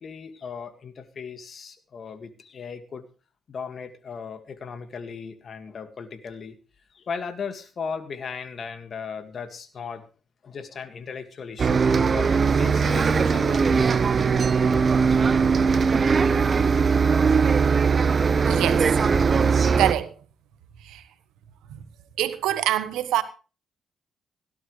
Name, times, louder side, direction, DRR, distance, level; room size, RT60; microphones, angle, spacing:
voice 1, 0.0-3.0 3.5-6.6 6.9-10.0 10.4-14.0, left 5 dB, 55° left, 2.0 m, -37 dB
Bus, 11.6-19.9, right 5 dB, 45° right, 1.0 m, -20 dB
voice 2, 18.5-18.9 19.8-20.1 20.8-21.0 21.7-21.8 22.2-23.2, right 13 dB, 85° right, 1.3 m, -25 dB
17.0 x 12.0 x 3.3 m
supercardioid pair, 60°, 0 cm